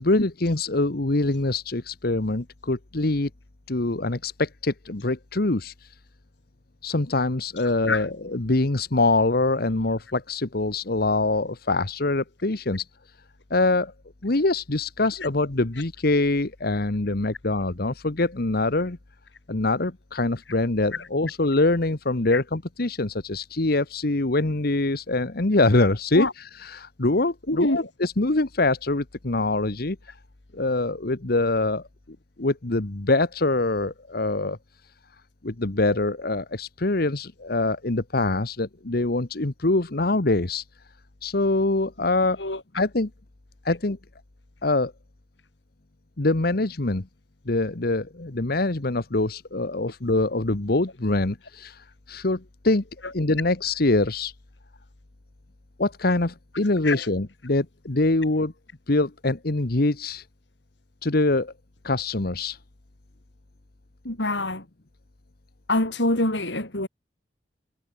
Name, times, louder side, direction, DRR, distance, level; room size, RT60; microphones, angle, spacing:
voice 1, 0.0-3.3 3.7-5.9 6.8-12.9 13.5-13.9 14.2-19.0 19.5-30.0 30.5-31.8 32.4-34.6 35.4-40.6 41.2-42.4 42.7-43.1 43.6-44.0 44.6-44.9 46.2-47.1 47.5-52.8 53.1-54.3 55.8-58.5 58.9-60.2 61.0-61.5 61.8-62.6, left 2 dB, 55° left, 1.3 m, -24 dB
voice 2, 27.5-27.9 42.4-42.6 53.0-53.2 56.8-57.1 64.0-64.6 65.7-66.9, left 2 dB, 80° left, 7.2 m, -25 dB
head